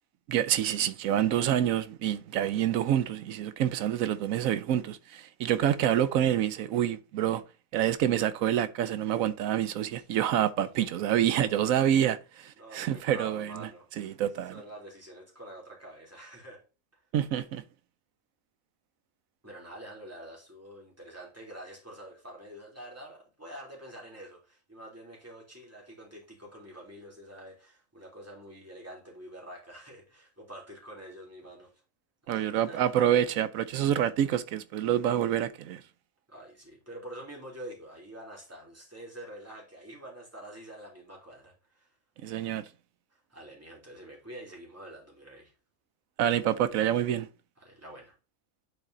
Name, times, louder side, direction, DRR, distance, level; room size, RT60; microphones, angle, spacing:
voice 1, 0.3-7.4 7.7-13.7 14.0-14.6 17.1-17.6 32.3-35.8 42.2-42.6 46.2-47.3, right 10 dB, 85° right, 1.1 m, -27 dB
voice 2, 12.6-14.1 14.5-16.6 19.4-31.7 32.3-32.9 36.3-41.9 43.1-45.5 47.6-48.1, right 1 dB, 10° right, 2.7 m, -47 dB
9.9 x 4.2 x 3.8 m
omnidirectional pair, 1.4 m